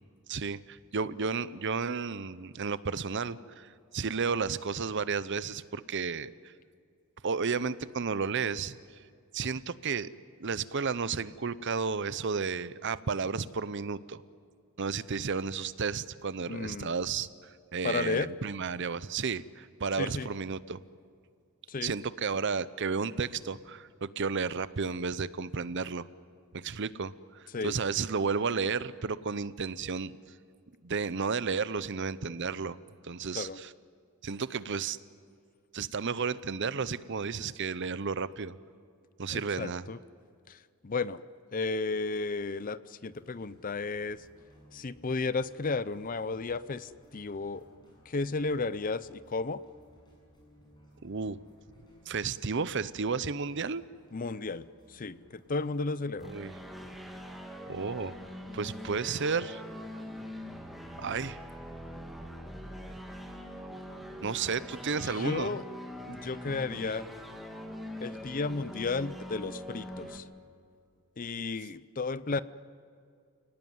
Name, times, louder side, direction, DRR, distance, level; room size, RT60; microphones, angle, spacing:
voice 1, 0.3-6.3 7.2-8.8 9.3-10.1 10.4-14.2 14.8-20.8 21.8-26.1 26.5-30.1 30.8-32.8 33.0-33.7 34.2-35.0 35.7-38.6 39.2-39.8 51.0-51.4 52.1-53.8 56.2-56.5 57.7-58.1 58.5-59.6 61.0-61.4 64.2-65.6, right 5 dB, 55° right, 16 dB, 0.7 m, -32 dB
voice 2, 16.5-16.9 17.8-18.3 20.0-20.3 21.7-21.9 27.5-27.7 33.3-33.6 39.3-40.0 40.5-40.6 40.8-41.2 41.5-44.2 44.7-47.6 48.1-49.6 54.1-54.6 54.9-56.3 65.0-65.6 66.1-67.0 68.0-70.2 71.2-72.4, left 3 dB, 40° left, 16 dB, 0.6 m, -33 dB
sound 1, 43.1-56.2, equal, 20° left, 7.9 m, -60 dB
sound 2, 56.2-70.2, equal, ahead, 2.1 m, -43 dB
29.0 x 18.5 x 9.4 m, 2.3 s
head